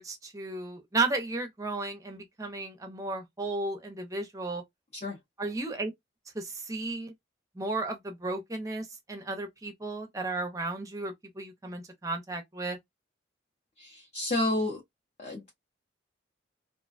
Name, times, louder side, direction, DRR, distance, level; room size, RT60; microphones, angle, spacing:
voice 1, 0.0-4.6 5.4-5.9 6.3-7.1 7.5-12.8, right 2 dB, 15° right, 0.5 m, -34 dB
voice 2, 13.8-14.8 15.2-15.5, left 2 dB, 35° left, 0.7 m, -30 dB
2.5 x 2.2 x 2.4 m
head